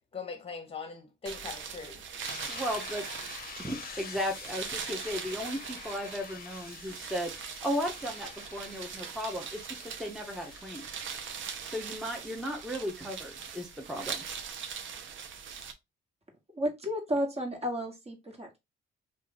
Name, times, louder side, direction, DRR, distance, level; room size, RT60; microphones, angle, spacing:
voice 1, 0.1-2.1 2.3-2.5, left 4 dB, 30° left, 1.0 m, -41 dB
sound 1, 1.2-15.7, right 7 dB, 75° right, 0.7 m, -41 dB
sound 2, 2.2-13.9, left 7 dB, 50° left, 0.6 m, -48 dB
voice 2, 2.5-3.0 3.6-7.3 7.6-10.9 11.6-14.2, equal, ahead, 0.8 m, -35 dB
voice 3, 16.5-18.6, equal, 30° right, 1.6 m, -32 dB
3.1 x 2.5 x 3.8 m
cardioid pair, 90°, 20 cm